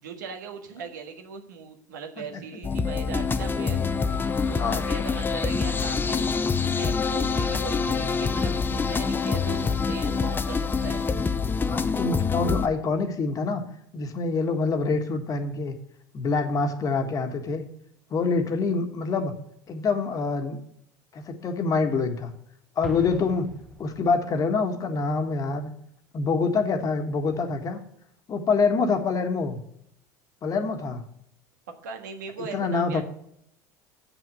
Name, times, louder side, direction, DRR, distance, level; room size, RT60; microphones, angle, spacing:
voice 1, 0.0-3.8 4.4-6.3 6.6-11.0 31.8-33.0, right 5 dB, 85° right, 4 dB, 1.6 m, -39 dB
sound 1, 2.6-12.7, left 5 dB, 20° left, 0.7 m, -26 dB
voice 2, 11.7-13.6 13.9-15.7 16.1-17.7 18.1-19.3 19.7-20.6 21.1-22.3 22.8-23.5 23.8-25.7 26.1-27.8 28.3-29.6 30.4-31.0 32.4-33.0, left 4 dB, 40° left, 6 dB, 1.5 m, -26 dB
Explosion, 22.8-24.4, right 1 dB, ahead, 1.0 m, -41 dB
7.6 x 6.1 x 7.7 m, 0.72 s
hypercardioid pair, 85°, 9 cm